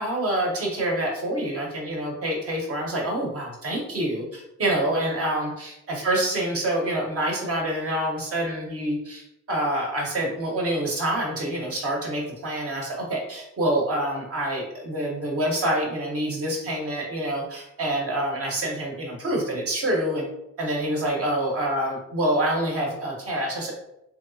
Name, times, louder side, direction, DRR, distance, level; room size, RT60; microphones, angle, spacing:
voice 1, 0.0-20.3 20.6-23.7, right 1 dB, 50° right, -1 dB, 1.2 m, -27 dB
3.1 x 2.9 x 2.7 m, 0.84 s
cardioid pair, 90°, 30 cm